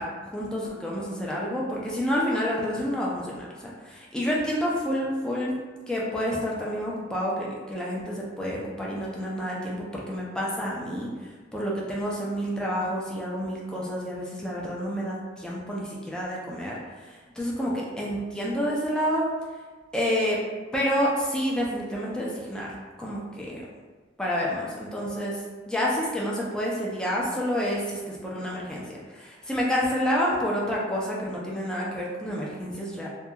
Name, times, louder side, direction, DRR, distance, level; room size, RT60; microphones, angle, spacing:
voice 1, 0.0-5.5 5.9-11.1 11.5-16.8 17.4-19.3 19.9-20.4 20.7-22.7 23.0-23.6 24.2-33.1, equal, 5° left, -5 dB, 0.4 m, -29 dB
2.7 x 2.3 x 2.2 m, 1.4 s
head